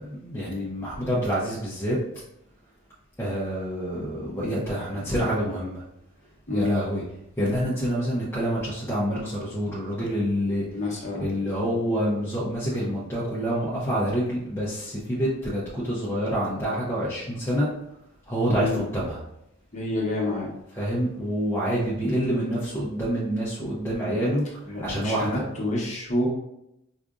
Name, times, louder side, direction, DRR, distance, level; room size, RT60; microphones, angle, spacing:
voice 1, 0.0-2.0 3.2-5.8 6.5-7.0 7.4-10.6 11.2-17.7 18.3-19.2 20.8-24.4 24.8-25.4, equal, 10° left, -8 dB, 0.6 m, -27 dB
voice 2, 10.7-11.3 18.5-18.8 19.7-20.5 24.7-26.3, left 2 dB, 35° left, -4 dB, 0.9 m, -28 dB
4.6 x 2.5 x 2.4 m, 0.83 s
head